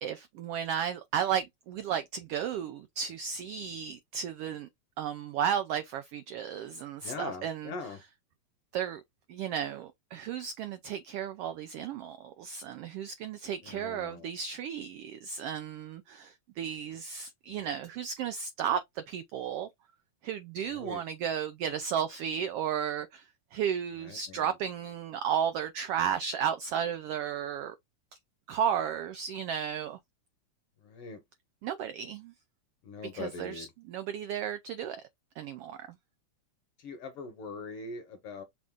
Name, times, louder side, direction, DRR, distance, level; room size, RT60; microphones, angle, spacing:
voice 1, 0.0-4.7 5.0-7.7 8.7-9.0 9.3-19.7 20.2-23.2 23.5-27.7 28.5-30.0 31.6-32.3 33.1-35.0 35.4-35.8, right 8 dB, 85° right, 1.3 m, -34 dB
voice 2, 7.0-8.0 13.6-14.3 20.6-21.0 24.0-24.6 30.8-31.2 32.8-33.7 36.8-38.4, left 4 dB, 65° left, 1.7 m, -41 dB
6.1 x 2.5 x 3.5 m
omnidirectional pair, 3.3 m